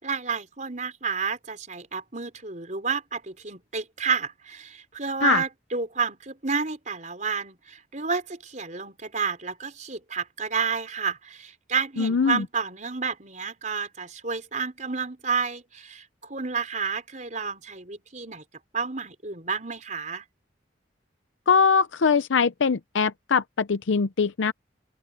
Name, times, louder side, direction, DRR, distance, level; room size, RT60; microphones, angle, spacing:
voice 1, 0.0-18.4 18.7-20.2, right 5 dB, 40° right, 4.6 m, -30 dB
voice 2, 12.0-12.4 21.5-24.5, left 5 dB, 90° left, 0.6 m, -22 dB
open air
head